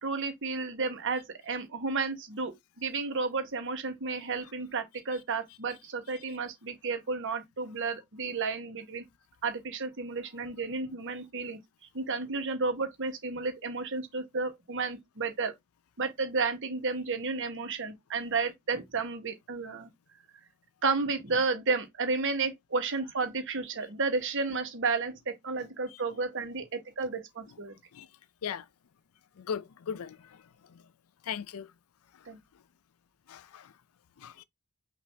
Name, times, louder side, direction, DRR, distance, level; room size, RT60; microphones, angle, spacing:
voice 1, 0.0-9.0 9.4-11.6 11.9-15.5 16.0-19.9 20.8-27.7 32.3-32.4, right 4 dB, 60° right, 1.1 m, -32 dB
voice 2, 29.4-30.2 31.3-31.7 33.3-33.7 34.2-34.4, left 7 dB, 75° left, 0.4 m, -37 dB
5.7 x 2.5 x 3.4 m
head